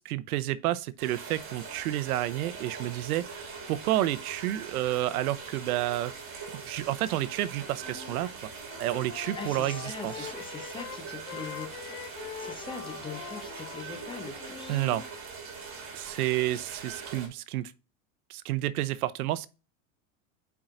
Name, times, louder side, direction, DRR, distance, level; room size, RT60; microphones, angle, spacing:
voice 1, 0.1-6.1 6.7-8.3 8.8-10.3 14.7-15.0 15.9-17.7 18.3-19.5, right 14 dB, 80° right, 0.7 m, -30 dB
sound 1, 1.0-17.3, right 5 dB, 30° right, 2.4 m, -42 dB
Wind instrument woodwind instrument, 7.8-8.2 8.5-15.1, left 9 dB, 70° left, 1.6 m, -43 dB
voice 2, 9.4-14.8, left 4 dB, 10° left, 0.8 m, -42 dB
8.6 x 4.7 x 2.6 m
supercardioid pair, 130°, 43 cm